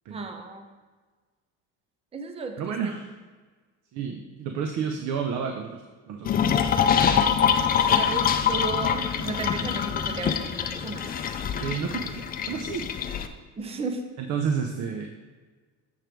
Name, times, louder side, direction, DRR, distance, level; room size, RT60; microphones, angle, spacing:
voice 1, 0.1-0.7 2.1-2.9 7.9-11.1 13.6-14.0, right 4 dB, 20° right, 6 dB, 0.6 m, -34 dB
voice 2, 2.6-3.1 3.9-6.7 11.6-12.9 14.2-15.1, right 6 dB, 70° right, 4 dB, 0.7 m, -31 dB
sound 1, 6.2-13.3, left 8 dB, 30° left, 0.4 m, -24 dB
7.4 x 5.1 x 4.5 m, 1.4 s
cardioid pair, 140°, 30 cm